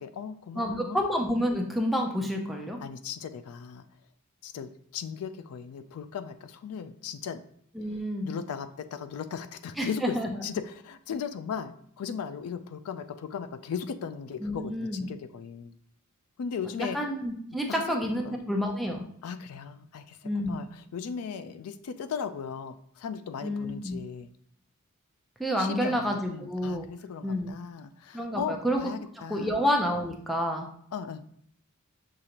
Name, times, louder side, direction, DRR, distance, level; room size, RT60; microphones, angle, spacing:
voice 1, 0.0-1.0 2.8-3.8 4.4-7.4 8.2-10.2 10.4-15.8 16.4-17.0 17.7-18.4 19.2-24.3 25.6-29.6 30.9-31.2, left 6 dB, 80° left, 11 dB, 0.3 m, -37 dB
voice 2, 0.5-2.8 7.7-8.3 9.8-10.3 14.4-15.1 16.9-19.1 20.2-20.7 23.4-24.0 25.4-26.9 27.2-27.5 28.1-28.8 29.3-30.7, equal, ahead, 1 dB, 0.5 m, -29 dB
6.5 x 2.4 x 2.9 m, 0.66 s
head